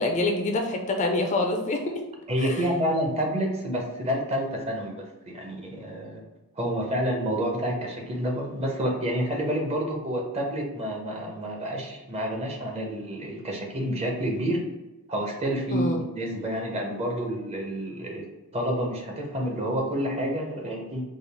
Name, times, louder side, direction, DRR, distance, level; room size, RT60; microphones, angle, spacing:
voice 1, 0.0-1.9 2.4-2.6 15.7-16.0, left 2 dB, 35° left, 3 dB, 0.4 m, -26 dB
voice 2, 2.3-4.9 5.3-6.2 6.5-14.6 15.1-18.2 18.5-21.0, equal, 30° right, 0 dB, 0.7 m, -29 dB
3.7 x 2.3 x 3.3 m, 1.0 s
head